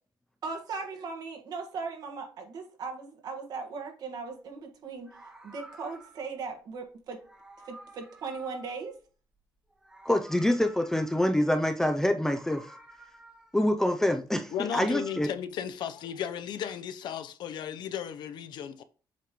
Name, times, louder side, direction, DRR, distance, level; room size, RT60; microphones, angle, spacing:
voice 1, 0.4-7.2 7.6-9.0, right 4 dB, 60° right, 1.5 m, -38 dB
Meow, 4.2-4.4 5.0-6.4 7.1-9.4 9.7-11.6 12.1-13.7 14.3-15.2, right 1 dB, 10° right, 0.9 m, -52 dB
voice 2, 10.0-12.7 13.5-15.3, left 1 dB, 5° left, 0.4 m, -26 dB
voice 3, 14.5-18.8, left 9 dB, 70° left, 0.6 m, -35 dB
7.5 x 3.0 x 5.1 m
cardioid pair, 150°, 8 cm